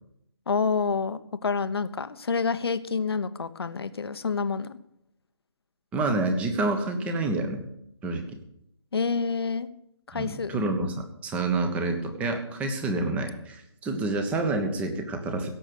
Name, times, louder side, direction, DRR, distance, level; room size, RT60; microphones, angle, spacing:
voice 1, 0.5-4.8 8.9-9.7 10.1-10.6, left 5 dB, 60° left, 12 dB, 1.0 m, -28 dB
voice 2, 5.9-7.6 8.0-8.2 10.1-15.5, right 2 dB, 10° right, 6 dB, 1.2 m, -28 dB
16.5 x 7.6 x 6.7 m, 0.76 s
figure-of-eight pair, 145°, 14 cm